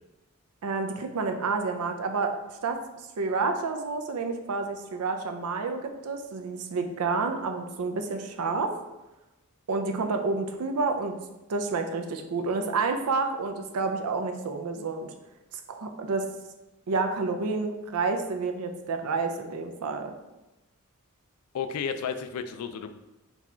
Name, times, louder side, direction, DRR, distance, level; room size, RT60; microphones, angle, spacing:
voice 1, 0.6-2.3 2.6-2.8 3.2-8.7 9.7-11.1 11.5-15.1 15.7-16.3 16.9-20.1, right 4 dB, 90° right, 5 dB, 0.5 m, -29 dB
voice 2, 21.5-22.9, left 6 dB, 80° left, 9 dB, 0.4 m, -32 dB
4.1 x 2.3 x 4.2 m, 1.0 s
head